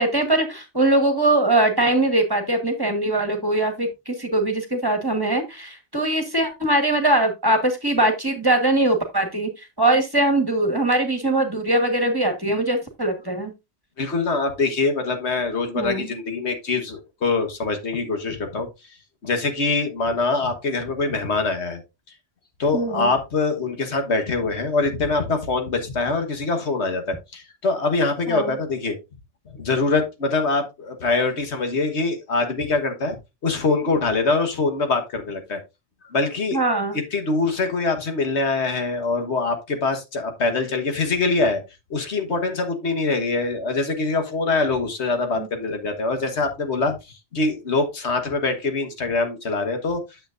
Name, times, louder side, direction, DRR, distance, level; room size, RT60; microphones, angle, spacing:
voice 1, 0.0-13.5 15.7-16.1 22.7-23.1 28.3-28.5 36.5-36.9 45.4-45.5, right 1 dB, 20° right, 5 dB, 1.4 m, -21 dB
voice 2, 14.0-18.7 19.2-21.8 22.6-28.9 29.5-35.6 36.1-36.6 37.1-41.6 41.9-50.0, left 3 dB, 80° left, 6 dB, 1.7 m, -24 dB
9.2 x 7.3 x 2.5 m, 0.24 s
omnidirectional pair, 1.1 m